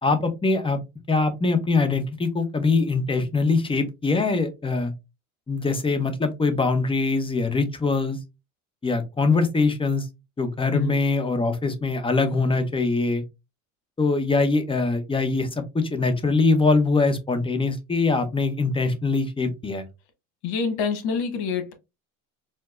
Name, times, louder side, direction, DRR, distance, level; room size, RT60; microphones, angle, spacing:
voice 1, 0.0-0.8 1.1-4.9 5.5-8.2 8.8-10.1 10.4-13.2 14.0-19.8, left 3 dB, 15° left, 0.8 m, -23 dB
voice 2, 20.4-21.7, left 5 dB, 65° left, 1.0 m, -26 dB
4.3 x 2.0 x 2.4 m
hypercardioid pair, 80°, 40 cm